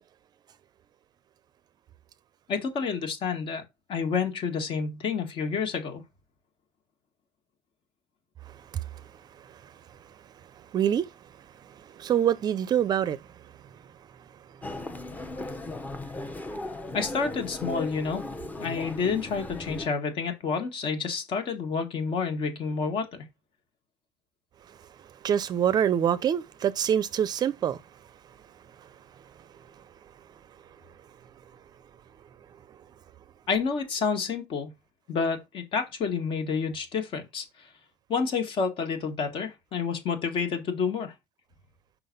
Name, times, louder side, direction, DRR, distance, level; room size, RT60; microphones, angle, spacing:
voice 1, 2.5-3.6 3.9-6.0 16.9-18.2 18.6-23.1 33.5-34.7 35.1-37.5 38.1-41.1, left 5 dB, 50° left, 1.8 m, -29 dB
voice 2, 10.7-11.1 11.9-13.2 25.2-27.8, right 9 dB, 40° right, 0.5 m, -25 dB
Human voice, 14.6-19.9, left 2 dB, 15° left, 0.9 m, -37 dB
5.8 x 4.0 x 5.3 m
cardioid pair, 140°, 11 cm